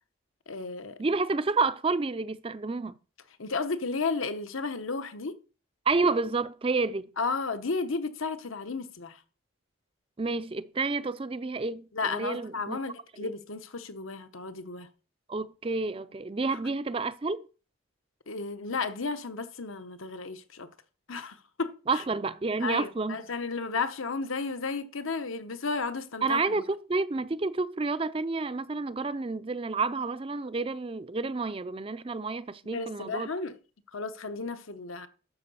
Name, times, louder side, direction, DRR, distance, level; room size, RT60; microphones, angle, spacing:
voice 1, 0.5-1.0 3.4-5.3 7.2-9.2 11.9-14.9 16.5-16.6 18.3-20.7 21.1-22.0 22.6-26.6 32.7-33.6 33.9-35.1, left 4 dB, 80° left, 1.0 m, -33 dB
voice 2, 1.0-3.0 5.9-7.1 10.2-12.8 13.2-13.3 15.3-17.5 21.9-23.2 26.2-33.3, right 3 dB, 25° right, 0.4 m, -30 dB
11.5 x 4.8 x 6.9 m
head